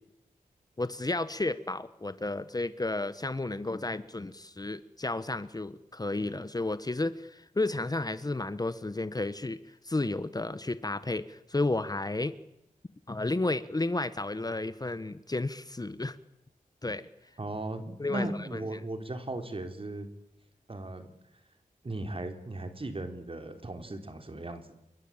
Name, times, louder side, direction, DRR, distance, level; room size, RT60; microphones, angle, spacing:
voice 1, 0.8-12.3 13.1-16.2 16.8-17.1 18.0-18.6, left 2 dB, 25° left, 14 dB, 1.1 m, -32 dB
voice 2, 17.4-20.1 20.7-21.1 21.8-24.7, right 2 dB, 40° right, 7 dB, 3.9 m, -37 dB
27.5 x 23.5 x 8.9 m, 0.85 s
wide cardioid pair, 80°, 15 cm